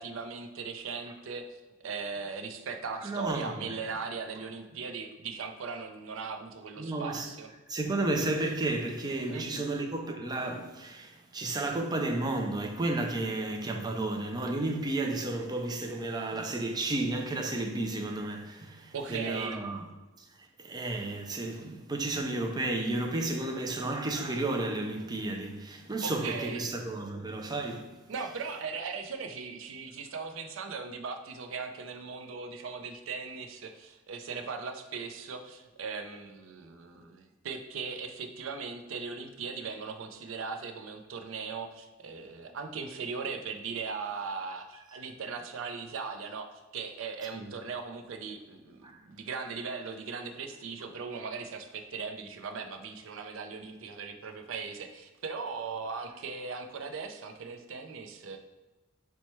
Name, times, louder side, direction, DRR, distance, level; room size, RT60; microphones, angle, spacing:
voice 1, 0.0-1.4 1.8-7.5 9.3-9.6 18.9-19.6 26.0-26.7 28.1-48.8 49.1-58.4, right 5 dB, 85° right, 0.4 m, -39 dB
voice 2, 3.0-3.7 6.8-7.3 7.7-19.8 20.6-27.9 44.9-45.0 47.3-47.5 48.8-49.0, right 2 dB, 20° right, 0.4 m, -32 dB
4.3 x 2.2 x 4.3 m
head